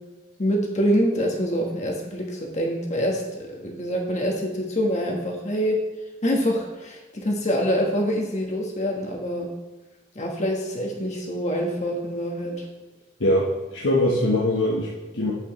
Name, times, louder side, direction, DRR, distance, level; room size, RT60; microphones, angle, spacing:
voice 1, 0.4-5.8 6.2-9.5 10.1-12.6, equal, 40° left, 0 dB, 1.3 m, -25 dB
voice 2, 13.2-15.3, left 1 dB, 85° left, -4 dB, 1.2 m, -22 dB
8.7 x 8.1 x 3.1 m, 1.2 s
head